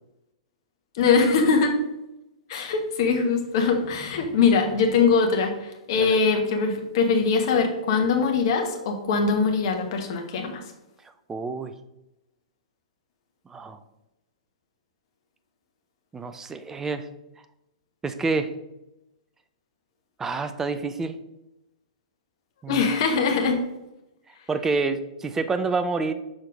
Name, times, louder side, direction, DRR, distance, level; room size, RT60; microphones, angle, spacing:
voice 1, 0.9-1.7 2.5-10.6 22.7-23.6, left 5 dB, 45° left, 3 dB, 1.4 m, -22 dB
voice 2, 11.3-11.7 13.5-13.8 16.1-17.1 18.0-18.5 20.2-21.2 22.6-22.8 24.5-26.1, right 4 dB, 10° right, 10 dB, 0.5 m, -28 dB
6.4 x 4.5 x 5.2 m, 0.93 s
figure-of-eight pair, 110°, 3 cm